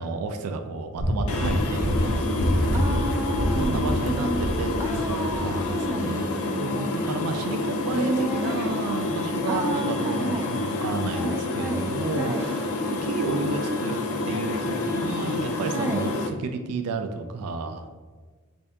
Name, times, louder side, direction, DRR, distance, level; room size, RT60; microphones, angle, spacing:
voice 1, 0.0-2.2 3.5-6.2 6.6-17.9, right 4 dB, 90° right, 7 dB, 0.3 m, -32 dB
sound 1, 1.0-5.0 5.3-5.4, equal, 65° right, 0.7 m, -26 dB
sound 2, 1.3-16.3, left 2 dB, 75° left, 0.4 m, -28 dB
voice 2, 2.7-4.4 4.8-7.0 7.8-8.5 9.5-10.5 11.1-11.9 12.2-12.5 15.7-16.1, right 1 dB, 15° right, 2 dB, 0.4 m, -31 dB
3.4 x 2.7 x 3.4 m, 1.4 s
head